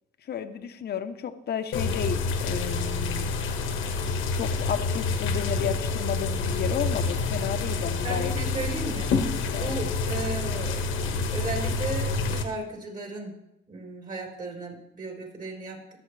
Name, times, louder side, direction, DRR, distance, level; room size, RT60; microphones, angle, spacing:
voice 1, 0.3-3.3 4.3-8.3 9.5-9.9, left 8 dB, 55° left, 8 dB, 0.9 m, -32 dB
sound 1, 1.7-12.4, left 3 dB, 90° left, 1.4 m, -28 dB
voice 2, 8.0-9.1 9.6-13.4 13.7-16.0, right 2 dB, 45° right, -1 dB, 4.4 m, -35 dB
23.5 x 8.0 x 3.3 m, 0.87 s
cardioid pair, 90°, 20 cm